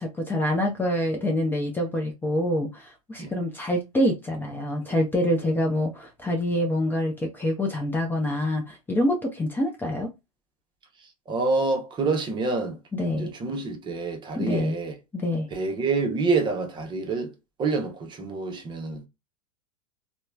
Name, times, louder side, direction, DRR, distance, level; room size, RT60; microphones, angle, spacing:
voice 1, 0.0-10.1 12.9-13.3 14.3-14.7 15.2-15.5, left 1 dB, 10° left, 0.6 m, -26 dB
voice 2, 11.0-12.8 13.1-14.9 15.5-19.1, right 3 dB, 25° right, 0.8 m, -27 dB
3.0 x 2.1 x 2.3 m
hypercardioid pair, 100°, 19 cm